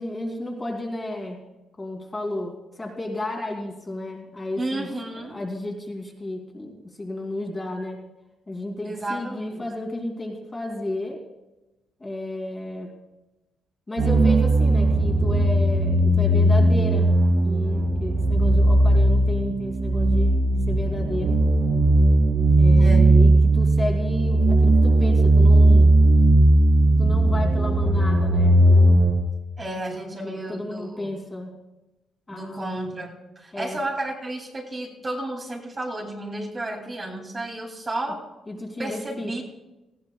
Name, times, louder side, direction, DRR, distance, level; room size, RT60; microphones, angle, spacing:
voice 1, 0.0-1.4 1.8-4.9 5.1-8.0 8.5-11.2 12.0-12.9 13.9-21.4 22.6-26.0 27.0-29.1 30.2-31.5 32.3-32.7 33.5-33.8 38.5-39.4, left 1 dB, 20° left, 0 dB, 2.7 m, -32 dB
voice 2, 4.6-5.4 8.8-9.7 22.8-23.2 29.6-31.1 32.3-33.1 33.4-38.2 38.8-39.4, right 1 dB, 30° right, 0 dB, 2.5 m, -32 dB
sound 1, 14.0-29.1, right 1 dB, 85° right, 2.7 m, -17 dB
19.0 x 14.5 x 2.3 m, 1.0 s
cardioid pair, 90°, 0 cm